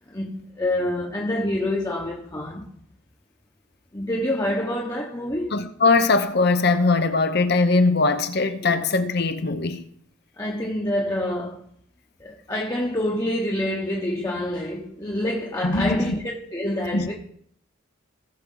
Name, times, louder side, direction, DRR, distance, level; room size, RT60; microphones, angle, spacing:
voice 1, 0.1-2.7 3.9-5.5 8.6-8.8 10.4-11.6 12.2-17.1, left 1 dB, 15° left, 1.0 m, -27 dB
voice 2, 5.5-9.8 15.6-16.2 16.9-17.1, left 3 dB, 50° left, 0.8 m, -21 dB
18.0 x 6.0 x 3.9 m
head